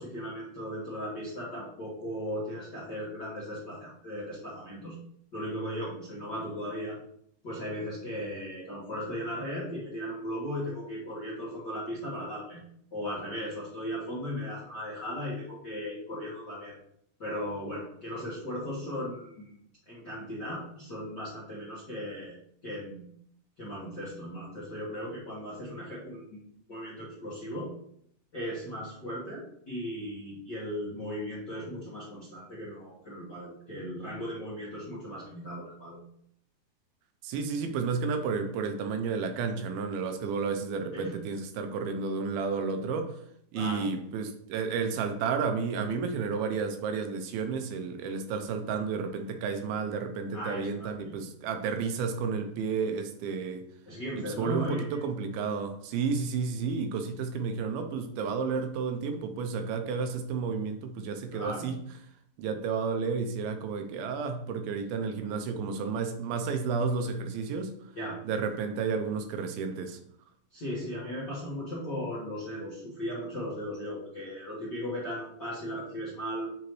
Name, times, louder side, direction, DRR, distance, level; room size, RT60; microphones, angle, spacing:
voice 1, 0.0-5.0 5.3-7.0 7.4-12.6 12.9-16.7 17.2-19.5 19.9-22.4 22.6-23.1 23.6-26.4 26.7-27.7 28.3-36.0 40.9-41.1 43.5-43.9 50.3-51.2 53.9-55.0 61.3-61.7 67.9-68.2 70.5-76.5, equal, 50° left, -9 dB, 1.3 m, -37 dB
voice 2, 37.2-43.1 43.5-53.7 54.2-61.8 62.4-67.8 68.3-70.0, right 5 dB, 80° right, 6 dB, 2.6 m, -31 dB
8.1 x 3.8 x 3.1 m, 0.68 s
omnidirectional pair, 4.4 m